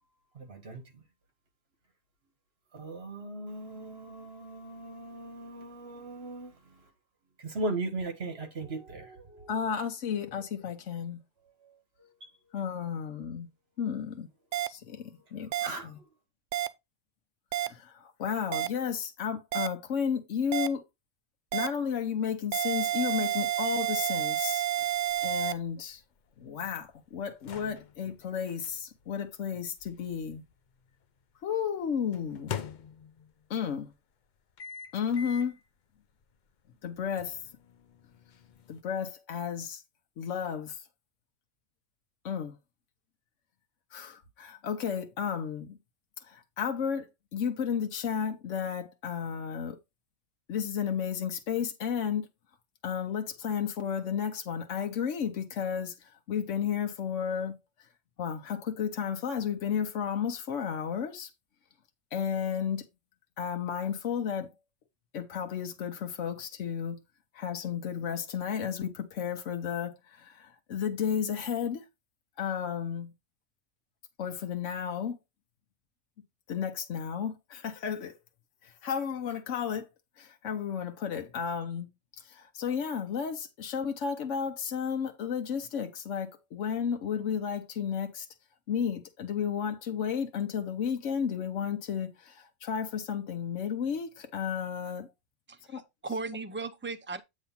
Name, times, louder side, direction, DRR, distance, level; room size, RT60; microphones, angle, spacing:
voice 1, 0.4-1.0 2.7-6.8 7.4-9.5 10.3-10.4 11.6-12.3 15.6-16.1, right 2 dB, 55° right, 1.6 m, -38 dB
voice 2, 9.5-11.2 12.5-13.5 13.8-14.3 14.7-15.5 15.8-16.0 17.6-20.8 21.5-26.0 26.4-30.4 31.4-32.5 33.5-33.9 34.9-35.6 36.8-37.4 38.7-39.8 40.2-40.8 42.2-42.6 43.9-45.8 46.2-49.8 50.5-52.3 52.8-57.6 58.2-61.3 62.1-62.9 63.4-64.5 65.1-67.0 67.3-71.8 72.4-73.1 74.2-75.2 76.5-78.2 78.6-79.9 80.2-81.9 82.2-88.3 88.7-95.1 95.7-95.8, left 7 dB, 80° left, 1.2 m, -33 dB
sound 1, 14.5-14.7 15.5-15.7 16.5-16.7 17.5-17.7 18.5-18.7 19.5-19.7 20.5-20.7 21.5-21.7 22.5-25.5, right 12 dB, 85° right, 0.9 m, -29 dB
sound 2, 24.9-31.0 32.1-33.5 34.6-35.6 36.1-36.2 37.2-38.8, left 7 dB, 50° left, 0.6 m, -45 dB
voice 3, 95.5-97.2, right 3 dB, 15° right, 0.4 m, -37 dB
8.2 x 3.1 x 5.7 m
omnidirectional pair, 1.3 m